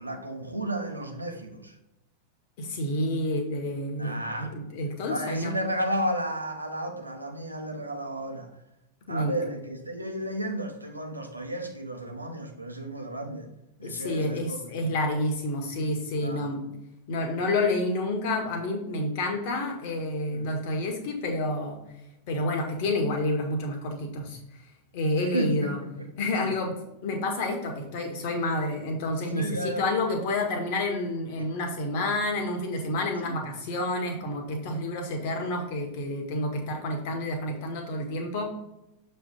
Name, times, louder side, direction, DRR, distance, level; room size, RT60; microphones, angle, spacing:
voice 1, 0.0-1.7 4.0-4.5 5.1-8.6 9.1-13.5 13.8-14.9 16.2-16.5 20.3-20.5 25.3-26.1 26.4-26.5 29.3-29.8 33.2-33.4 36.5-36.6, right 1 dB, 85° right, 3 dB, 0.9 m, -33 dB
voice 2, 2.6-5.6 9.1-9.3 13.8-16.7 17.1-21.8 22.3-24.4 24.9-25.8 26.2-26.7 27.0-38.4, left 1 dB, 50° left, 3 dB, 1.5 m, -29 dB
7.1 x 3.4 x 5.2 m, 0.89 s
figure-of-eight pair, 90°, 0 cm